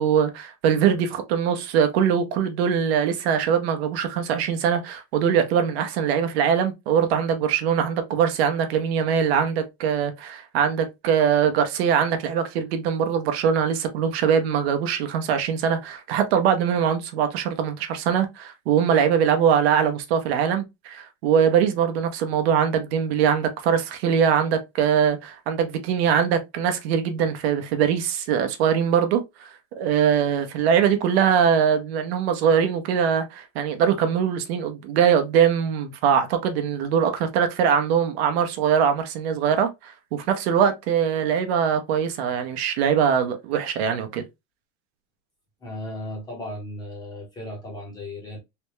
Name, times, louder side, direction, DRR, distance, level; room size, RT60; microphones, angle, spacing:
voice 1, 0.0-44.2, right 8 dB, 65° right, 0.7 m, -22 dB
voice 2, 45.6-48.4, left 1 dB, 10° left, 0.8 m, -35 dB
3.3 x 2.2 x 3.0 m
supercardioid pair, 170°, 34 cm